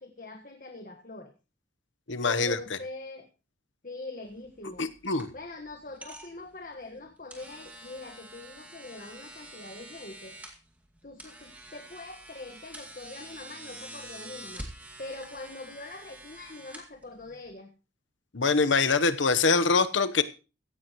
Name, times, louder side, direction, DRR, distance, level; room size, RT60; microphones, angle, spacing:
voice 1, 0.0-1.3 2.2-3.3 3.8-4.9 5.3-10.3 11.0-17.7, left 2 dB, 45° left, 4 dB, 1.5 m, -43 dB
voice 2, 2.1-2.8 4.8-5.3 18.3-20.2, left 4 dB, 85° left, 11 dB, 1.1 m, -24 dB
sound 1, 4.3-17.5, right 1 dB, 10° right, 2.2 m, -47 dB
16.0 x 15.5 x 3.1 m, 0.33 s
head